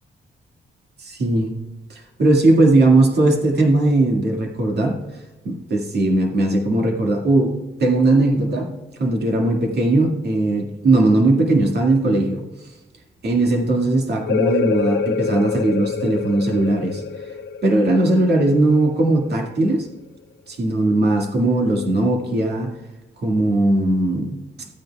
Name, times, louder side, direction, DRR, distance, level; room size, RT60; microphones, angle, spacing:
voice 1, 1.0-1.5 1.9-5.0 5.4-7.5 7.8-8.7 9.0-12.5 13.2-17.0 17.6-19.9 20.5-22.7 23.2-24.7, right 2 dB, 60° right, 1 dB, 2.0 m, -18 dB
sound 1, 14.3-19.6, left 5 dB, 75° left, 0.8 m, -26 dB
16.0 x 9.3 x 2.3 m, 1.1 s
cardioid pair, 115°, 19 cm